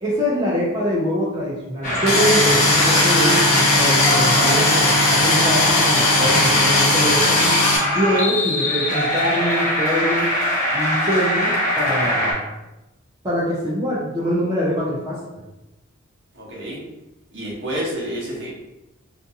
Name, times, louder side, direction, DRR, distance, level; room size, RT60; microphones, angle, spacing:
voice 1, 0.0-7.6 7.9-10.3 10.7-12.4 13.2-15.2, equal, 20° right, -8 dB, 0.4 m, -23 dB
sound 1, 1.8-12.3, left 1 dB, 35° left, 0.7 m, -22 dB
sound 2, 2.1-7.8, left 2 dB, 70° left, 0.7 m, -18 dB
voice 2, 16.3-16.8 17.3-18.5, equal, 50° right, -4 dB, 0.8 m, -29 dB
2.5 x 2.3 x 2.6 m, 1.0 s
head